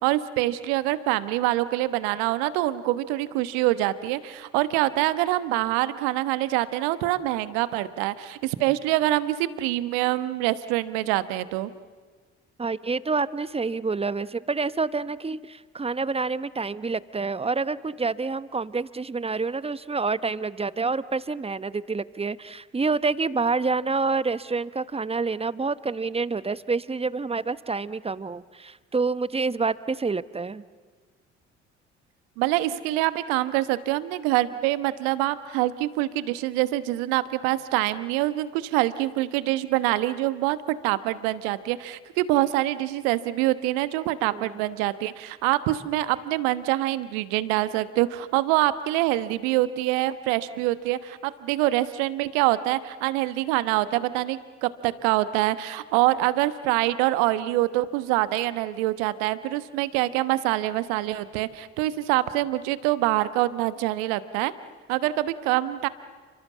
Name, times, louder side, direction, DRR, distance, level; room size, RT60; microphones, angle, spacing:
voice 1, 0.0-11.7 32.4-64.5 64.9-65.9, right 16 dB, 70° right, 14 dB, 1.2 m, -25 dB
voice 2, 12.6-30.6 44.3-44.6, right 4 dB, 20° right, 16 dB, 1.0 m, -28 dB
29.5 x 26.0 x 7.4 m, 1.5 s
hypercardioid pair, 50°, 32 cm